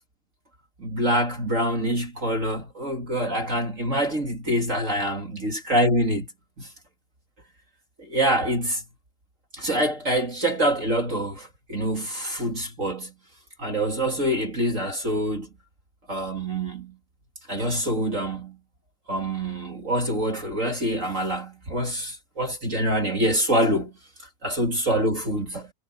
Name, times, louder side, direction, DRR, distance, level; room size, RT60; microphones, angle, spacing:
voice 1, 0.8-6.3 6.6-6.7 8.0-8.8 9.5-13.1 13.6-15.5 16.1-17.0 17.5-18.6 19.1-23.9 24.2-25.7, right 1 dB, 25° right, 1.7 m, -25 dB
omnidirectional pair, 5.1 m